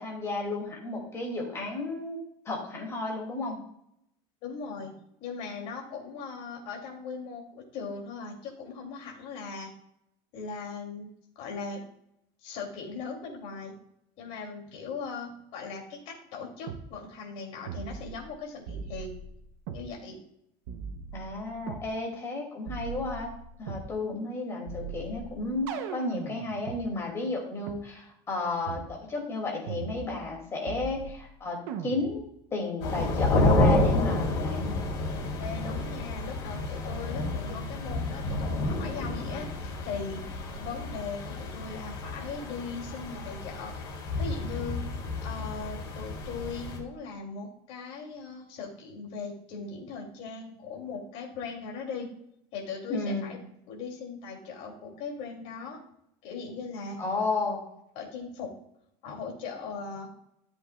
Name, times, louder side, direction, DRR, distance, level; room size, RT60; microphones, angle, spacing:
voice 1, 0.0-2.2 2.4-3.6 21.1-23.3 23.6-34.8 52.9-53.3 57.0-57.6, left 3 dB, 20° left, -1 dB, 2.9 m, -33 dB
voice 2, 4.4-4.9 5.2-9.7 10.3-11.8 12.4-13.7 14.2-19.1 19.7-20.2 24.0-24.2 35.4-43.7 44.2-44.8 45.2-52.1 52.5-53.4 53.7-55.8 56.2-57.0 57.9-58.5 59.0-60.1, left 4 dB, 55° left, 0 dB, 3.1 m, -39 dB
sound 1, 16.7-16.9 17.7-18.3 18.7-19.9 20.7-21.9 22.7-23.9 24.7-26.8 27.7-27.8 28.7-28.9 29.7-30.4 30.7-31.3 31.7-32.3, right 6 dB, 70° right, 1.0 m, -39 dB
sound 2, 32.8-46.8, left 2 dB, 85° left, 3.9 m, -30 dB
13.5 x 7.9 x 2.5 m, 0.74 s
cardioid pair, 160°, 13 cm